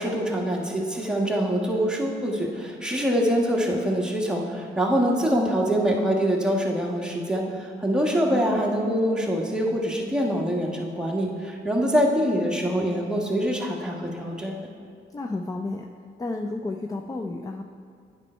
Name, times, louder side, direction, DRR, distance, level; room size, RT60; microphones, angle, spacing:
voice 1, 0.0-14.7, equal, 5° right, -2 dB, 1.3 m, -24 dB
voice 2, 8.3-8.6 15.1-15.9 16.2-17.6, left 2 dB, 15° left, 4 dB, 0.4 m, -31 dB
9.0 x 5.5 x 4.3 m, 2.4 s
cardioid pair, 90°, 20 cm